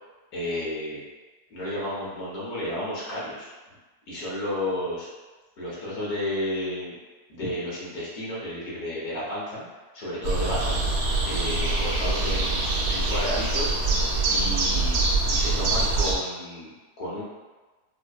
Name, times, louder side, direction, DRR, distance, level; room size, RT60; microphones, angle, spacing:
voice 1, 0.3-1.0 1.5-3.5 4.1-5.1 5.6-7.0 7.3-9.6 9.9-10.8 11.2-13.8 14.3-15.0 15.3-17.2, left 1 dB, 65° left, -7 dB, 1.4 m, -32 dB
sound 1, 10.2-16.2, right 2 dB, 65° right, 1.1 m, -24 dB
4.4 x 2.1 x 2.2 m, 1.2 s
omnidirectional pair, 1.8 m